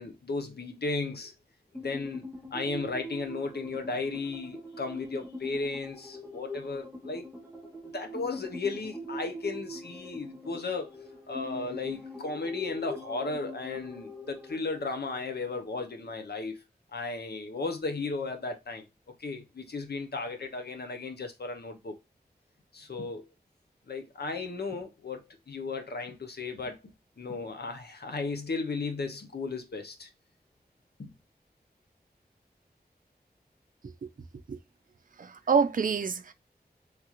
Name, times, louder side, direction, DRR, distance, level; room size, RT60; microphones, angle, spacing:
voice 1, 0.0-1.3 1.7-2.2 2.5-7.2 7.8-10.9 11.3-16.6 16.9-18.8 19.2-22.0 22.7-23.2 23.9-30.1 31.0-31.1, left 3 dB, 75° left, 0.7 m, -35 dB
sound 1, 1.7-16.2, left 1 dB, ahead, 0.7 m, -43 dB
voice 2, 35.2-36.3, right 6 dB, 55° right, 0.4 m, -27 dB
3.3 x 2.4 x 2.9 m
wide cardioid pair, 55°, 17 cm